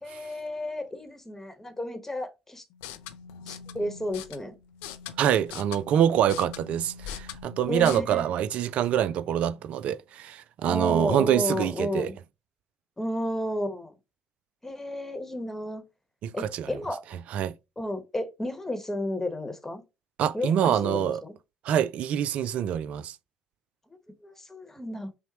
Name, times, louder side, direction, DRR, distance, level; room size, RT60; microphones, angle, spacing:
voice 1, 0.0-2.6 3.5-4.5 7.7-8.3 10.6-12.2 13.0-13.9 14.6-15.8 16.3-17.0 17.8-19.8 20.3-21.3 24.2-25.1, left 1 dB, 15° left, 1.1 m, -32 dB
sound 1, 2.7-8.0, left 8 dB, 70° left, 0.4 m, -42 dB
voice 2, 5.2-12.1 16.2-16.7 17.3-17.5 20.2-21.2 21.6-23.2, right 10 dB, 60° right, 0.3 m, -25 dB
5.6 x 2.1 x 2.9 m
figure-of-eight pair, 50°, 3 cm